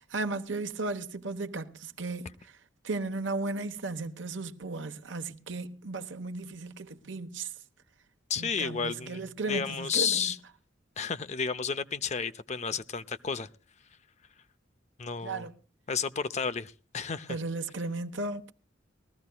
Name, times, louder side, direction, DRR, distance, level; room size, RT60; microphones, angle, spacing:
voice 1, 0.0-2.5 2.8-7.5 8.4-10.3 15.2-15.5 17.3-18.5, right 3 dB, 75° right, 1.0 m, -35 dB
voice 2, 8.3-10.4 11.0-13.5 15.0-15.5 15.9-17.4, left 6 dB, 35° left, 0.5 m, -32 dB
21.0 x 14.5 x 2.2 m
head